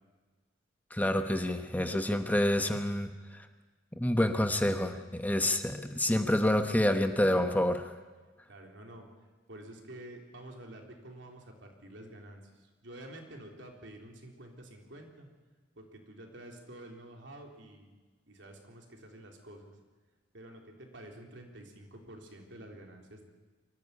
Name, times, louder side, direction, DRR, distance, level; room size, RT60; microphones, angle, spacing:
voice 1, 0.9-3.5 3.9-7.9, left 1 dB, 10° left, 7 dB, 1.0 m, -28 dB
voice 2, 8.5-9.1 9.5-15.3 15.8-17.9 18.3-19.7 20.3-23.2, right 1 dB, 70° right, 2 dB, 3.7 m, -49 dB
23.5 x 14.5 x 9.7 m, 1.3 s
head